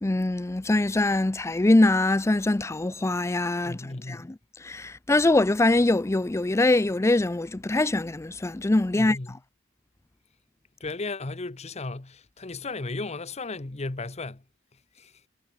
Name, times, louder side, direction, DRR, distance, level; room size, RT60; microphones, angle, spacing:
voice 1, 0.0-4.3 4.6-9.2, left 2 dB, 15° left, 0.4 m, -23 dB
voice 2, 3.6-4.2 8.9-9.4 10.8-14.4 15.0-15.1, left 3 dB, 35° left, 1.0 m, -35 dB
head